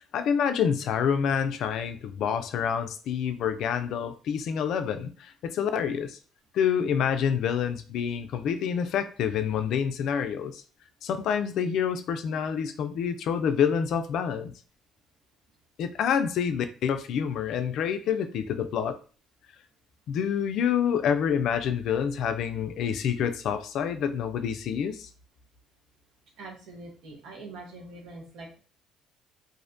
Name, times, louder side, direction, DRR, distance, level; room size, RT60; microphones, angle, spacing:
voice 1, 0.1-6.2 6.5-10.6 11.0-14.5 15.8-19.0 20.1-25.1, left 7 dB, 70° left, 9 dB, 0.3 m, -27 dB
voice 2, 26.4-28.6, right 2 dB, 80° right, 1 dB, 0.9 m, -44 dB
2.5 x 2.1 x 2.5 m, 0.38 s
cardioid pair, 90°, 0 cm